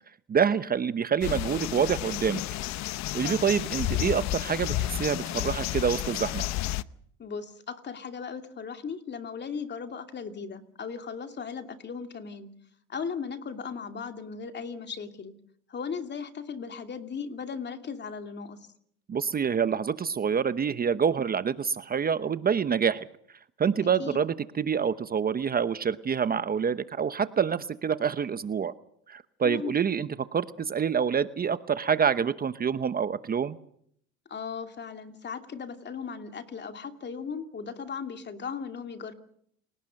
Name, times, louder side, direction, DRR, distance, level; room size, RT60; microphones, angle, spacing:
voice 1, 0.3-2.4 3.1-6.5 19.1-23.1 23.6-28.7 29.1-33.6, right 7 dB, 30° right, 13 dB, 0.9 m, -27 dB
sound 1, 1.2-6.8, left 15 dB, 65° left, 0.8 m, -31 dB
voice 2, 7.2-12.5 12.9-15.3 15.7-18.6 24.0-24.2 29.4-29.7 34.3-39.1, left 6 dB, 35° left, 7 dB, 2.7 m, -37 dB
29.0 x 18.0 x 6.5 m, 0.67 s
cardioid pair, 110°, 30 cm